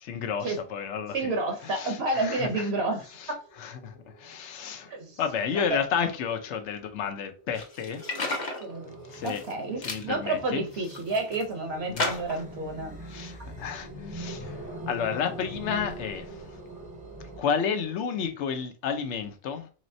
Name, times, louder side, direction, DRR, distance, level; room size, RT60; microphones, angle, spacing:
voice 1, 0.0-1.3 1.7-2.6 3.6-4.9 5.2-8.0 9.1-9.4 9.8-10.6 11.9-12.2 13.0-16.5 17.4-19.7, left 7 dB, 75° left, 1.0 m, -31 dB
sound 1, 0.8-18.2, right 4 dB, 85° right, 1.2 m, -49 dB
voice 2, 1.1-3.1 4.9-5.2 5.5-5.8 8.6-12.9, right 2 dB, 65° right, 0.9 m, -30 dB
sound 2, 7.6-8.6 9.1-9.5 9.8-10.1 10.7-11.4 12.0-12.4, left 2 dB, 45° left, 0.8 m, -32 dB
sound 3, 8.7-17.4, equal, 10° right, 0.6 m, -43 dB
4.0 x 3.1 x 2.6 m
omnidirectional pair, 1.2 m